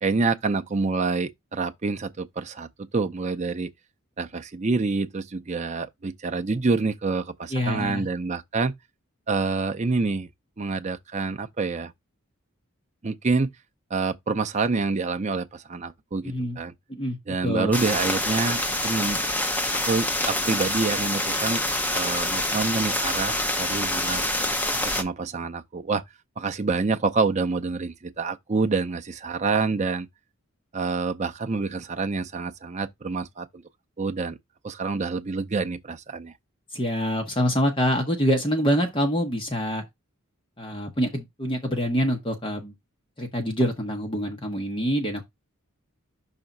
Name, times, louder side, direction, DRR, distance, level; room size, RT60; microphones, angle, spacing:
voice 1, 0.0-3.7 4.2-8.7 9.3-10.3 10.6-11.9 13.0-13.5 13.9-16.7 17.3-19.2 19.9-21.6 21.9-24.2 24.8-26.0 26.4-30.1 30.7-33.5 34.0-34.4 34.6-36.3, right 4 dB, 35° right, 0.5 m, -27 dB
voice 2, 7.5-8.1 16.2-16.6 16.9-17.2 17.4-17.8 36.7-39.8 40.6-42.7 43.2-45.2, equal, 25° left, 1.1 m, -25 dB
sound 1, 17.7-25.0, left 1 dB, 10° left, 0.7 m, -26 dB
5.8 x 3.5 x 5.2 m
head